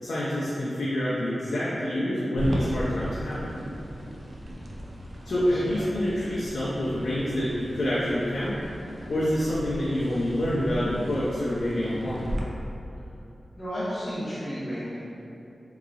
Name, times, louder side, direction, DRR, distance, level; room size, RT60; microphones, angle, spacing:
voice 1, 0.0-3.6 5.2-8.6 9.1-12.4, equal, 85° left, -10 dB, 0.6 m, -27 dB
sound 1, 2.4-12.4, equal, 60° right, 0.4 m, -37 dB
voice 2, 5.2-5.8 13.5-15.0, equal, 45° left, -12 dB, 1.0 m, -33 dB
3.9 x 2.9 x 2.4 m, 2.8 s
wide cardioid pair, 85°, 0 cm